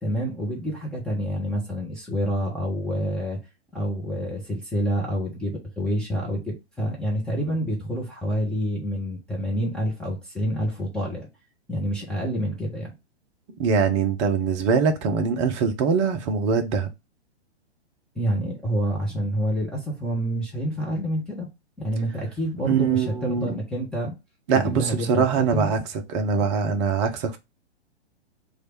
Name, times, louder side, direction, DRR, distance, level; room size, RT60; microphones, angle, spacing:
voice 1, 0.0-3.4 3.7-11.3 11.7-12.9 18.1-21.5 21.8-24.1 24.5-25.7, equal, 5° left, 0.8 m, -28 dB
voice 2, 13.6-16.9 22.6-23.6 24.5-25.8 26.1-27.4, right 6 dB, 30° right, 0.6 m, -23 dB
3.2 x 2.4 x 4.4 m
figure-of-eight pair, 115°, 33 cm